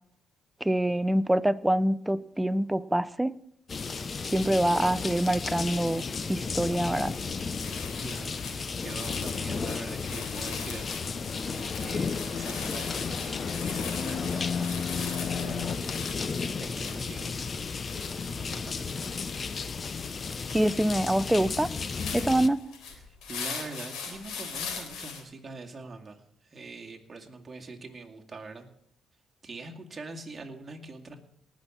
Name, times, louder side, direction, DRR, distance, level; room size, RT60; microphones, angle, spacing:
voice 1, 0.6-3.4 4.3-6.0 6.3-7.1 20.5-21.7 22.1-22.6, right 1 dB, 5° right, 15 dB, 0.6 m, -25 dB
sound 1, 3.7-22.5, left 5 dB, 40° left, 0.8 m, -34 dB
sound 2, 7.1-7.3 7.5-25.2, left 5 dB, 85° left, 3.6 m, -41 dB
voice 2, 8.0-8.4 8.8-10.9 11.5-15.8 16.6-17.5 18.4-19.0 23.3-26.2 26.5-28.7 29.4-31.2, right 3 dB, 30° right, 1 dB, 2.2 m, -43 dB
sound 3, 9.1-15.8, left 7 dB, 60° left, 0.4 m, -36 dB
19.0 x 6.3 x 7.2 m, 0.72 s
cardioid pair, 90°, 0 cm